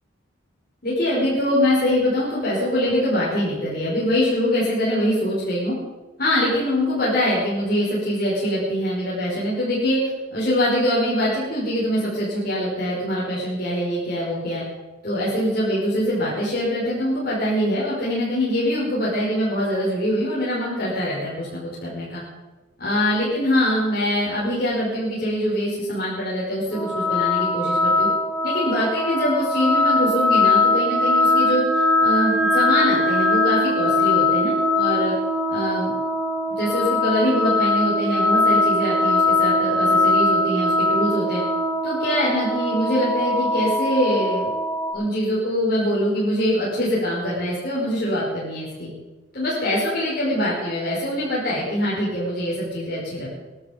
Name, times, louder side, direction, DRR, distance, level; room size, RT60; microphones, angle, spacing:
voice 1, 0.8-5.8 6.2-10.0 10.3-14.6 15.0-22.2 22.8-28.1 28.4-35.1 35.5-35.9 36.6-41.4 41.8-44.5 44.9-48.9 49.3-53.4, equal, 50° left, -8 dB, 5.4 m, -23 dB
sound 1, 26.7-44.9, left 2 dB, ahead, 5.7 m, -21 dB
21.5 x 12.0 x 5.3 m, 1.2 s
head